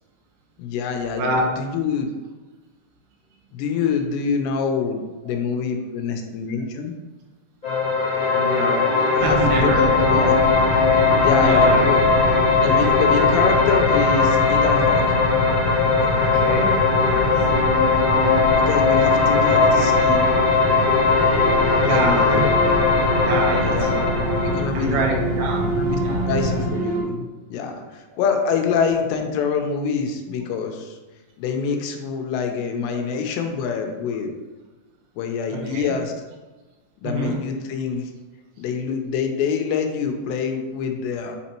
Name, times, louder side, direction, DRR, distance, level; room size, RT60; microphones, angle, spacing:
voice 1, 0.6-1.2 1.6-2.1 3.5-6.9 9.1-9.7 10.0-10.4 11.2-12.0 12.6-15.0 18.5-20.3 21.8-22.4 23.6-23.9 24.4-25.0 25.7-31.0 31.4-34.3 35.2-36.1 37.0-38.1 38.6-41.4, left 6 dB, 85° left, 4 dB, 2.9 m, -25 dB
voice 2, 1.2-1.5 5.3-5.4 8.3-10.2 11.3-12.0 16.2-17.4 19.3-19.4 21.2-21.4 21.8-22.7 23.2-24.3 24.7-26.3 32.9-33.0 35.5-36.0 37.0-37.4, right 2 dB, 75° right, -1 dB, 3.1 m, -27 dB
sound 1, 7.6-24.6, left 4 dB, 40° left, 0.6 m, -19 dB
sound 2, 9.2-26.7, left 1 dB, 65° left, 2.5 m, -26 dB
sound 3, 21.3-27.0, right 5 dB, 55° right, 3.8 m, -29 dB
7.9 x 4.1 x 4.4 m, 1.2 s
omnidirectional pair, 5.0 m